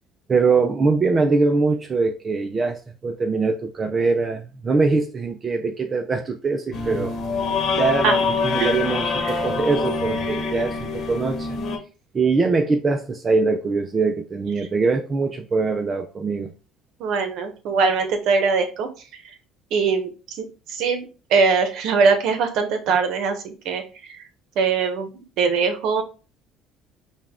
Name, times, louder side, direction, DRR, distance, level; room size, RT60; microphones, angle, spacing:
voice 1, 0.3-7.2 7.8-11.6 12.1-16.5, right 4 dB, 30° right, 0.5 m, -22 dB
sound 1, 6.7-11.8, left 4 dB, 55° left, 1.1 m, -25 dB
voice 2, 17.0-18.9 19.7-23.8 24.1-24.2 24.6-26.0, right 5 dB, 70° right, 1.0 m, -22 dB
5.3 x 2.4 x 3.6 m
cardioid pair, 110°, 0 cm